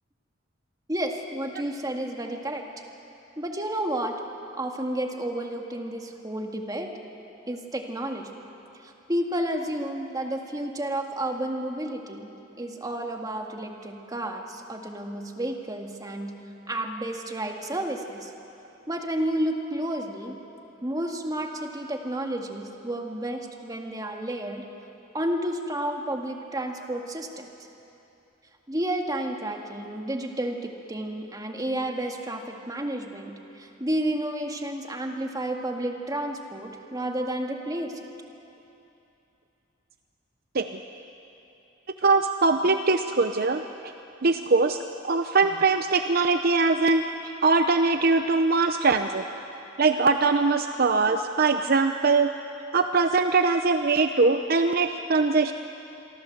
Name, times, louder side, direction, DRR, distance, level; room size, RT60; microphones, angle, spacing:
voice 1, 0.9-2.8 3.4-4.1 4.5-6.9 7.5-8.3 8.8-16.3 16.7-18.3 18.9-20.4 20.8-24.6 25.1-27.5 28.7-38.1, right 1 dB, 20° right, 3 dB, 2.0 m, -31 dB
voice 2, 42.0-43.6 44.2-44.8 45.0-47.0 47.4-49.3 49.8-52.3 52.7-55.5, right 3 dB, 50° right, 7 dB, 0.8 m, -22 dB
28.0 x 23.5 x 7.9 m, 2.9 s
head